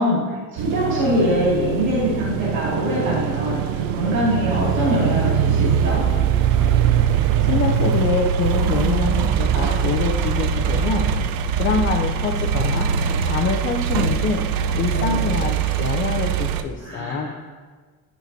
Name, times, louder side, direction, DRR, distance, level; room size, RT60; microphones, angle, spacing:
voice 1, 0.0-6.0 14.9-15.2 16.8-17.3, equal, 55° right, -7 dB, 2.3 m, -23 dB
sound 1, 0.6-16.6, right 7 dB, 75° right, 0.6 m, -22 dB
voice 2, 7.4-11.1 11.5-12.9 13.2-14.4 14.8-17.3, left 5 dB, 35° left, 3 dB, 0.5 m, -25 dB
11.0 x 5.8 x 2.7 m, 1.5 s
cardioid pair, 180°, 35 cm